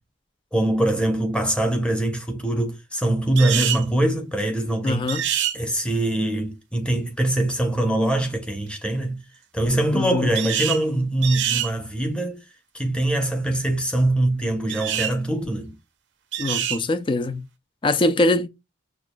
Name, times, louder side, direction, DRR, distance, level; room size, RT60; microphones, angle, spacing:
voice 1, 0.5-5.1 5.5-9.2 9.5-12.4 12.7-15.7, right 1 dB, 5° left, 0.8 m, -23 dB
sound 1, 3.4-3.9 5.1-5.6 10.4-10.8 11.2-11.7 14.7-15.2 16.3-16.8, right 10 dB, 65° right, 0.6 m, -25 dB
voice 2, 4.8-5.2 9.9-10.4 16.4-17.4 17.8-18.5, left 2 dB, 25° left, 0.3 m, -22 dB
6.3 x 2.4 x 2.2 m
head